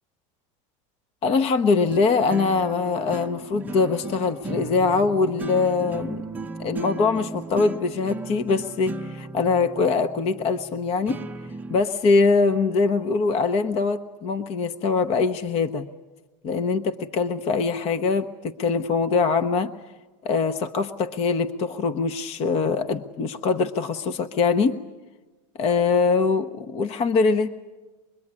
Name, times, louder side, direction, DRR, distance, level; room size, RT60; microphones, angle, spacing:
voice 1, 1.2-6.2 6.6-11.2 11.7-15.9 16.4-19.7 20.2-24.8 25.6-27.5, left 4 dB, 40° left, 9 dB, 0.9 m, -23 dB
sound 1, 1.8-11.8, right 3 dB, 10° right, 0.8 m, -36 dB
24.5 x 22.5 x 9.8 m, 1.2 s
supercardioid pair, 135°, 16 cm